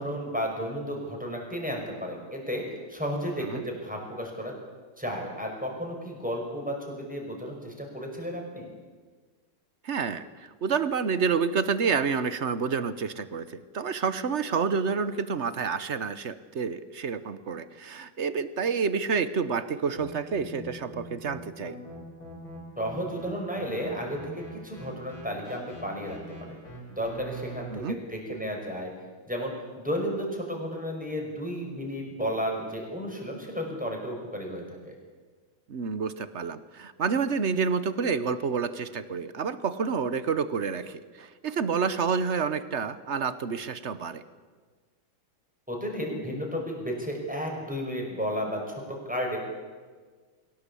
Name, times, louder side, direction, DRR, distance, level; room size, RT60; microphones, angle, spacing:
voice 1, 0.0-2.6 2.9-4.5 5.0-8.7 22.8-26.6 26.9-28.9 29.3-34.9 45.7-49.4, equal, 5° right, 0 dB, 5.4 m, -33 dB
voice 2, 9.8-21.8 27.7-28.0 35.7-44.2, right 5 dB, 55° right, 14 dB, 0.8 m, -29 dB
sound 1, 19.9-27.6, equal, 70° left, 6.3 m, -44 dB
23.0 x 17.5 x 8.4 m, 1.4 s
omnidirectional pair, 2.3 m